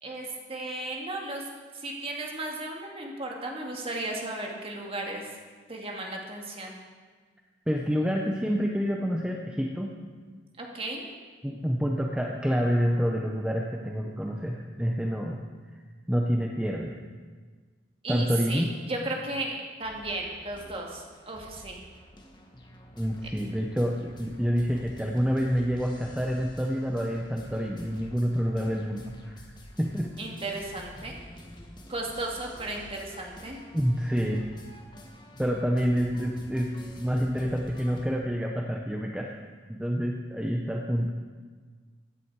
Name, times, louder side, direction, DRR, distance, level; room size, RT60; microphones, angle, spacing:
voice 1, 0.0-1.5 1.7-5.3 5.7-6.7 10.6-11.1 18.0-21.8 23.2-23.3 30.2-31.2 31.9-33.6, right 2 dB, 30° right, 0 dB, 2.1 m, -35 dB
voice 2, 7.7-9.9 11.4-15.4 16.1-16.9 18.1-18.7 23.0-29.4 29.8-30.1 33.7-34.4 35.4-36.7 37.0-39.4 39.7-41.1, equal, 5° right, 0 dB, 0.8 m, -28 dB
sound 1, 19.8-38.1, left 1 dB, 25° left, 1.5 m, -48 dB
15.5 x 10.5 x 4.8 m, 1.5 s
head